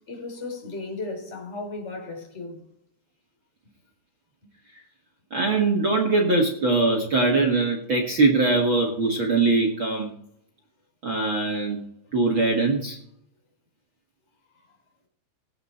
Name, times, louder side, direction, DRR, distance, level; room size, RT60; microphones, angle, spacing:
voice 1, 0.0-2.6, left 3 dB, 15° left, 3.6 m, -35 dB
voice 2, 5.3-10.2 11.0-11.8 12.1-13.0, right 3 dB, 55° right, 1.4 m, -22 dB
18.0 x 8.8 x 4.3 m
omnidirectional pair, 5.1 m